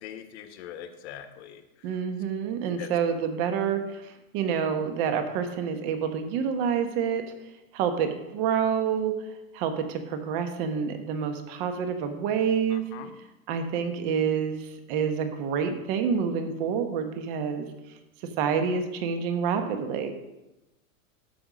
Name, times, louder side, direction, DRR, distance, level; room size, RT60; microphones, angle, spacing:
voice 1, 0.0-2.0 2.8-3.0 12.7-13.1, left 10 dB, 50° left, 8 dB, 1.2 m, -42 dB
voice 2, 1.8-7.2 7.7-9.1 9.5-12.9 13.5-17.7 18.4-20.1, right 7 dB, 40° right, 6 dB, 1.2 m, -28 dB
13.5 x 5.5 x 5.1 m, 0.99 s
supercardioid pair, 150°, 43 cm